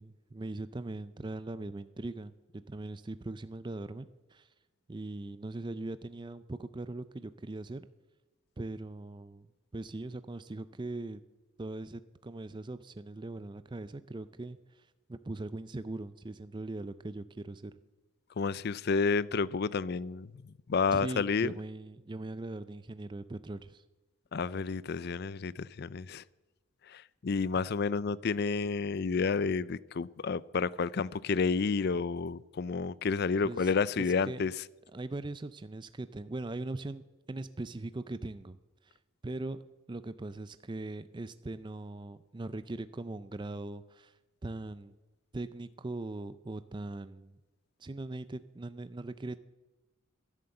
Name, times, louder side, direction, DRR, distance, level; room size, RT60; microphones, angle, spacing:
voice 1, 0.0-2.3 2.7-4.5 4.9-7.9 8.6-9.5 9.7-11.2 11.6-17.7 20.9-23.8 33.4-34.4 34.9-38.6 38.8-39.0 39.2-39.6 39.9-44.1 44.4-44.9 45.3-47.4 47.8-49.4, right 2 dB, 20° right, 0.4 m, -40 dB
voice 2, 18.4-20.3 20.7-21.5 24.3-26.2 26.9-34.5, left 5 dB, 50° left, 0.4 m, -30 dB
14.5 x 11.0 x 7.8 m
head